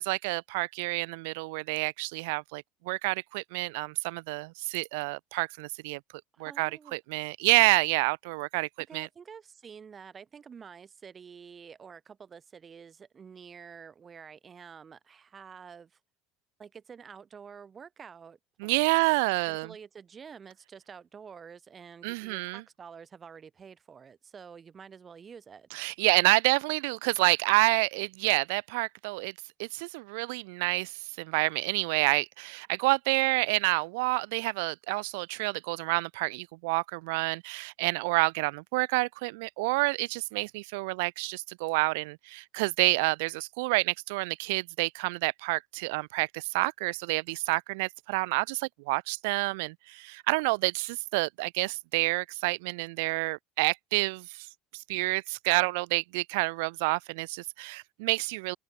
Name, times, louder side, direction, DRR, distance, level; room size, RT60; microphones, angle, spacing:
voice 1, 0.0-6.0 6.4-9.1 18.6-19.7 22.0-22.6 25.7-29.3 29.6-54.5 54.7-58.6, right 26 dB, 85° right, 1.6 m, -28 dB
voice 2, 6.3-7.0 8.9-16.0 16.6-19.0 19.4-25.7, right 6 dB, 25° right, 5.0 m, -48 dB
open air
cardioid pair, 135°, 0 cm